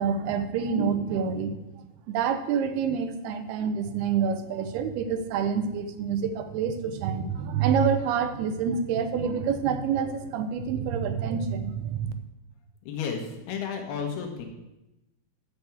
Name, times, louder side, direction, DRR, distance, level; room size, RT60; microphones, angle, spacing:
voice 1, 0.0-1.6 2.1-12.1, right 6 dB, 85° right, 9 dB, 2.8 m, -27 dB
voice 2, 12.8-14.5, left 6 dB, 80° left, 3 dB, 3.3 m, -32 dB
9.1 x 5.9 x 8.2 m, 0.97 s
omnidirectional pair, 4.5 m